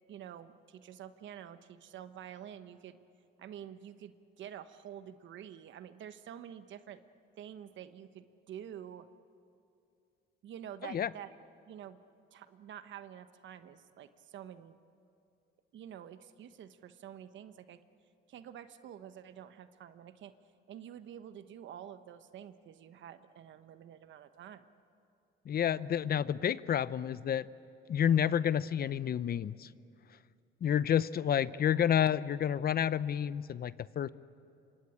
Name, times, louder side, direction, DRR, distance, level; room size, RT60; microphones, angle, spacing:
voice 1, 0.1-3.0 3.4-7.0 7.4-9.1 10.4-11.3 11.7-12.0 12.3-14.8 15.7-17.8 18.3-20.3 20.7-24.6, right 10 dB, 65° right, 11 dB, 1.2 m, -48 dB
voice 2, 25.5-27.5 27.9-29.7 30.6-34.1, left 9 dB, 50° left, 17 dB, 0.7 m, -29 dB
27.5 x 25.0 x 8.8 m, 2.6 s
cardioid pair, 90°, 21 cm